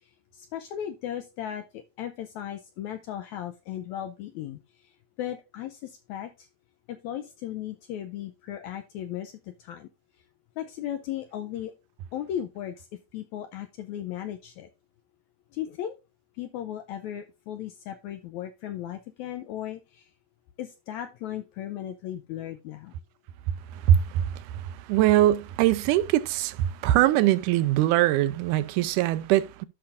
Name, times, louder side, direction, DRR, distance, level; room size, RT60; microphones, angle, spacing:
voice 1, 0.0-6.5 6.9-9.9 10.6-11.7 12.1-14.7 15.5-16.0 16.3-20.1 20.6-22.9, left 11 dB, 85° left, 1.7 m, -36 dB
voice 2, 23.7-29.7, right 13 dB, 80° right, 2.0 m, -22 dB
12.5 x 5.7 x 2.5 m
omnidirectional pair, 3.8 m